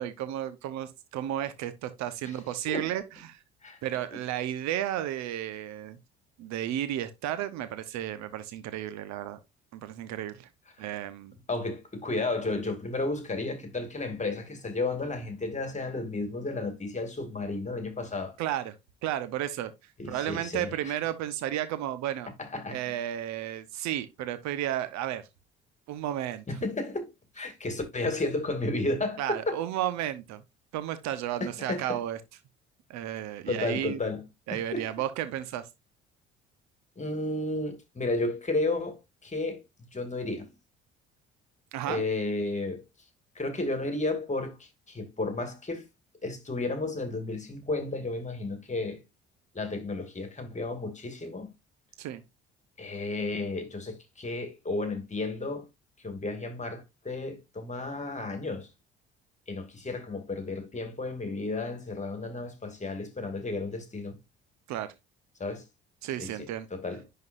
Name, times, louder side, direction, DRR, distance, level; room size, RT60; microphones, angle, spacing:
voice 1, 0.0-3.4 3.8-6.0 6.4-9.4 9.7-10.5 10.8-11.3 18.4-18.8 19.0-19.7 20.1-22.3 22.7-25.3 25.9-26.4 29.2-30.4 30.7-32.2 32.9-34.0 34.5-35.7 41.7-42.0 52.0-52.2 64.7-64.9 66.0-66.7, right 12 dB, 60° right, 1.0 m, -33 dB
voice 2, 11.5-18.4 20.0-21.0 22.4-22.8 26.5-27.1 27.3-29.6 31.4-32.0 33.5-34.2 34.5-34.9 37.0-39.6 39.9-40.5 41.9-42.8 43.4-45.9 46.2-49.0 49.5-51.5 52.8-55.7 56.0-58.7 59.5-64.2 65.4-65.6 66.2-67.0, left 2 dB, 20° left, 2.2 m, -33 dB
10.5 x 4.0 x 2.6 m
figure-of-eight pair, 55°, 32 cm